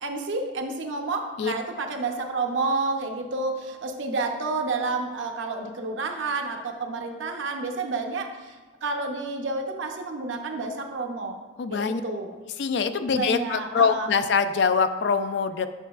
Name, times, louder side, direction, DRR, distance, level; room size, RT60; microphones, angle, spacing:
voice 1, 0.0-8.6 8.8-11.4 11.7-12.3 13.1-14.1, right 3 dB, 75° right, 4 dB, 0.7 m, -30 dB
voice 2, 11.6-12.0 12.6-15.7, left 5 dB, 60° left, 10 dB, 0.3 m, -24 dB
8.1 x 6.0 x 2.4 m, 1.3 s
head